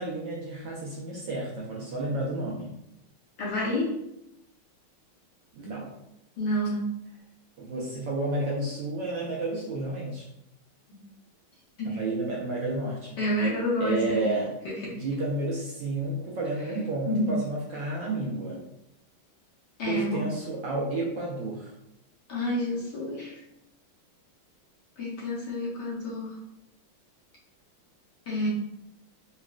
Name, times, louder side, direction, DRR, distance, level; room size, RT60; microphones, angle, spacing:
voice 1, 0.0-2.7 5.5-5.9 7.6-10.3 11.8-13.2 13.8-14.5 14.9-18.6 19.8-21.7, right 2 dB, 70° right, -4 dB, 1.1 m, -31 dB
voice 2, 3.4-3.9 6.4-6.8 10.9-11.0 11.8-12.0 13.2-14.2 14.8-14.9 17.1-17.3 19.8-20.2 22.3-23.4 25.0-26.3 28.3-28.5, left 1 dB, 60° left, -6 dB, 1.2 m, -29 dB
3.9 x 2.3 x 2.3 m, 0.83 s
omnidirectional pair, 2.4 m